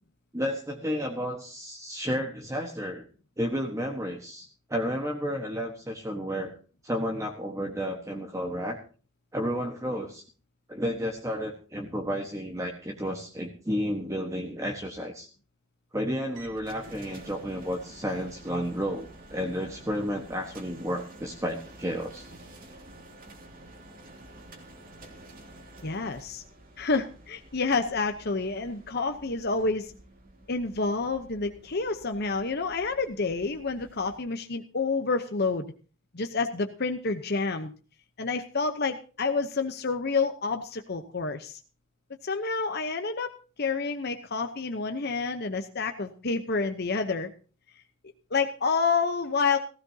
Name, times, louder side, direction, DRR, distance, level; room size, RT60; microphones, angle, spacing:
voice 1, 0.3-3.1 3.4-6.5 6.8-8.8 9.3-10.2 10.7-15.3 15.9-22.3, equal, 15° right, 2 dB, 1.3 m, -32 dB
sound 1, 16.3-34.2, right 1 dB, 40° right, 2.6 m, -50 dB
voice 2, 25.8-26.4 26.8-29.9 30.5-35.7 36.1-37.7 38.2-41.6 42.2-43.3 43.6-47.3 48.3-49.6, left 4 dB, 50° left, 6 dB, 0.9 m, -28 dB
17.5 x 16.0 x 2.8 m, 0.38 s
head